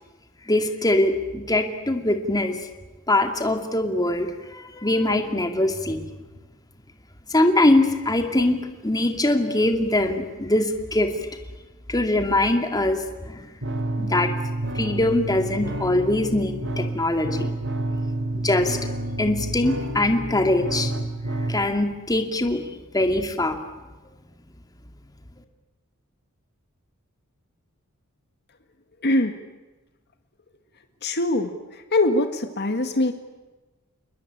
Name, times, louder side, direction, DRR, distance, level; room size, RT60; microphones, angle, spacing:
voice 1, 0.5-2.6 3.1-6.0 7.3-8.6 8.8-11.1 11.9-13.5 14.0-14.3 14.7-17.5 18.3-18.8 19.2-20.9 21.5-22.6 22.9-23.6, left 1 dB, 15° left, 6 dB, 2.4 m, -22 dB
sound 1, 13.6-21.6, right 1 dB, 60° right, 2.8 m, -29 dB
voice 2, 29.0-29.4 31.0-33.1, left 2 dB, 50° left, 7 dB, 1.8 m, -23 dB
29.0 x 21.0 x 8.7 m, 1.2 s
head